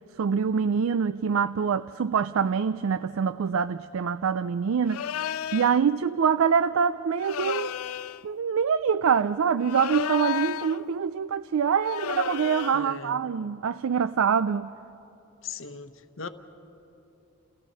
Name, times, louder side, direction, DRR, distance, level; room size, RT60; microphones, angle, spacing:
voice 1, 0.2-5.0 5.5-7.7 8.2-14.7, right 6 dB, 70° right, 0.4 m, -25 dB
sound 1, 4.9-5.8 7.2-8.2 9.6-10.8 11.8-12.9, left 9 dB, 75° left, 0.4 m, -32 dB
voice 2, 12.7-13.2 15.4-16.3, left 5 dB, 60° left, 0.9 m, -38 dB
29.5 x 16.5 x 5.6 m
head